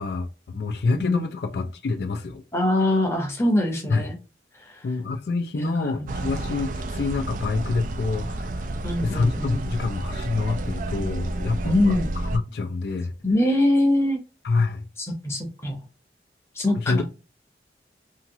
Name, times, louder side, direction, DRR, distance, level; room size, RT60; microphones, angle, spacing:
voice 1, 0.0-2.4 3.9-4.1 4.8-8.7 9.0-12.0 12.3-13.1 14.4-14.9 16.8-17.0, left 3 dB, 65° left, 0.4 m, -27 dB
voice 2, 2.5-4.2 4.5-4.9 5.5-6.1 8.8-9.6 11.6-12.1 13.2-14.2 15.0-15.8 16.5-17.0, left 1 dB, 15° left, 0.7 m, -23 dB
sound 1, 6.1-12.4, right 1 dB, 45° right, 0.3 m, -30 dB
2.8 x 2.8 x 2.7 m
head